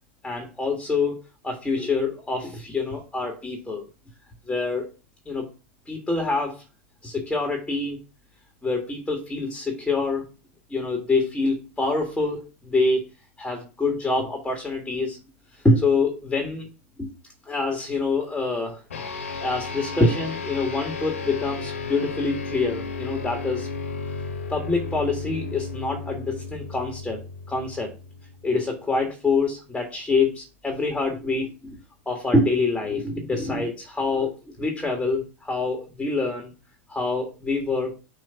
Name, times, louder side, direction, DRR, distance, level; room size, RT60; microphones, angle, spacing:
voice 1, 0.2-3.8 4.5-4.9 5.3-5.5 5.9-6.6 7.0-8.0 8.6-10.2 10.7-13.1 13.4-15.2 15.6-16.7 17.0-17.1 17.5-18.8 19.4-23.7 24.5-27.2 27.5-27.9 28.4-31.7 32.1-36.5 36.9-37.9, left 3 dB, 5° left, 2 dB, 1.8 m, -25 dB
sound 1, 18.9-28.6, left 4 dB, 90° left, 1.9 m, -34 dB
6.4 x 3.0 x 5.7 m, 0.31 s
hypercardioid pair, 100°, 7 cm